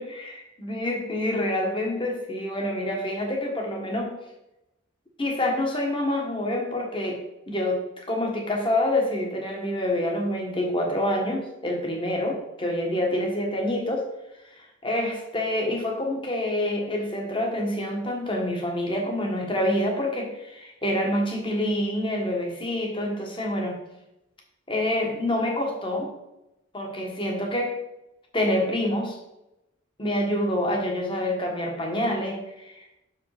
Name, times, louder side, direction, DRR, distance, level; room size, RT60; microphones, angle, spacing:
voice 1, 0.0-4.2 5.2-14.1 14.8-23.8 24.7-26.1 26.7-27.7 28.3-29.2 30.0-33.0, left 1 dB, 25° left, 1 dB, 1.4 m, -27 dB
6.4 x 5.1 x 4.9 m, 0.90 s
head